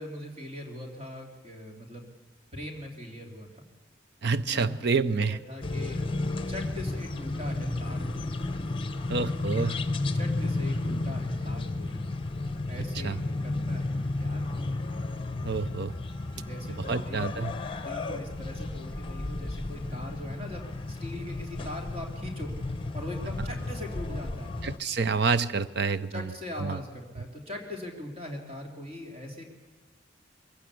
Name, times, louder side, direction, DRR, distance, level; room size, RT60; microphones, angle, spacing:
voice 1, 0.0-2.1 2.5-3.6 4.5-4.7 5.2-6.0 6.5-8.3 10.1-12.0 12.7-14.7 16.3-24.5 26.1-29.5, left 1 dB, 30° right, 1 dB, 3.3 m, -41 dB
voice 2, 4.2-5.4 9.1-9.8 13.0-13.2 15.4-15.9 16.9-17.5 24.6-26.2 26.6-26.8, right 4 dB, 55° right, 14 dB, 0.6 m, -27 dB
sound 1, 5.6-24.8, left 2 dB, 25° left, 1.0 m, -33 dB
23.0 x 15.5 x 8.4 m, 1.3 s
head